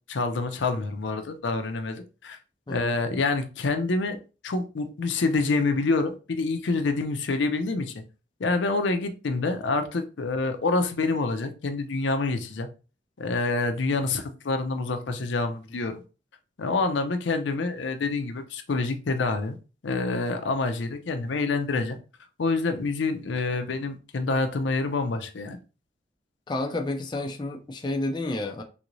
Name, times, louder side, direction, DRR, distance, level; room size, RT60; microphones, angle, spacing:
voice 1, 0.1-2.4 2.7-4.2 4.4-8.0 8.4-12.7 13.2-16.0 16.6-19.6 19.8-22.0 22.4-25.6, left 3 dB, 75° left, 0.5 m, -27 dB
voice 2, 26.5-28.6, left 2 dB, 25° left, 0.4 m, -30 dB
3.5 x 3.0 x 2.5 m
head